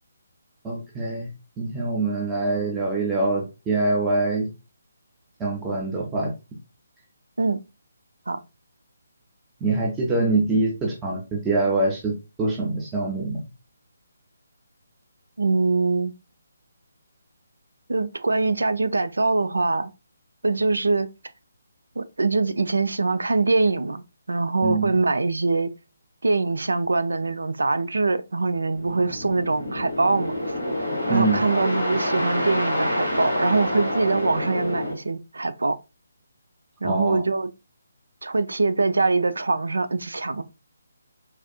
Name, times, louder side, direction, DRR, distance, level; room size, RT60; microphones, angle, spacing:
voice 1, 0.6-1.3 1.6-4.5 5.4-6.3 9.6-13.4 24.6-24.9 31.1-31.4 36.8-37.2, right 2 dB, 15° right, 0.7 m, -24 dB
voice 2, 15.4-16.1 17.9-19.9 20.4-21.1 22.0-25.7 26.2-30.4 31.1-35.8 36.8-37.5 38.2-40.4, right 3 dB, 70° right, 0.4 m, -23 dB
sound 1, 28.7-34.9, left 1 dB, 85° right, 1.6 m, -27 dB
4.1 x 2.4 x 2.3 m
figure-of-eight pair, 145°, 0 cm